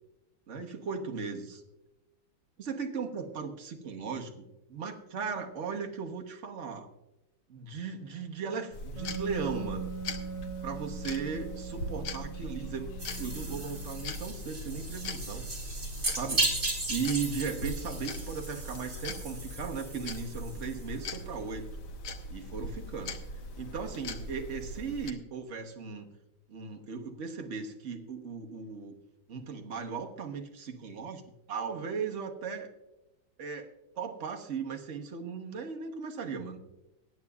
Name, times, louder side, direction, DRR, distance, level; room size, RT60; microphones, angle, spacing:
voice 1, 0.5-1.6 2.6-6.9 7.5-9.9 10.6-15.5 16.1-16.4 16.9-21.7 22.3-23.1 23.6-26.1 26.5-29.0 29.3-31.2 31.5-32.7 33.4-33.7 33.9-36.6, right 5 dB, 45° right, 2 dB, 1.1 m, -37 dB
sound 1, 8.7-25.1, left 1 dB, 60° left, 1.4 m, -40 dB
Wind instrument woodwind instrument, 8.9-14.3, right 6 dB, 25° left, 5.1 m, -41 dB
sound 2, 13.0-21.1, right 2 dB, 25° right, 2.8 m, -36 dB
23.0 x 9.2 x 2.4 m, 0.97 s
omnidirectional pair, 2.3 m